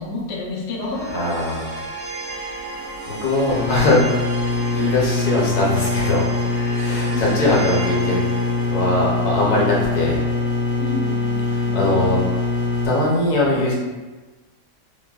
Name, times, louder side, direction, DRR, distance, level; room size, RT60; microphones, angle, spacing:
voice 1, 0.0-1.2 10.7-12.2, left 2 dB, 85° left, -4 dB, 0.5 m, -30 dB
sound 1, 0.9-12.0, right 2 dB, 55° right, 0.5 m, -34 dB
voice 2, 1.1-1.8 3.1-4.0 4.7-6.3 6.7-8.2 8.7-10.2 11.5-12.2 12.8-13.7, left 2 dB, 65° left, -4 dB, 1.2 m, -21 dB
sound 2, 2.3-13.1, left 1 dB, 30° left, 0.4 m, -43 dB
sound 3, 3.5-12.9, left 3 dB, 70° right, 1.4 m, -23 dB
3.3 x 2.1 x 2.2 m, 1.3 s
omnidirectional pair, 1.9 m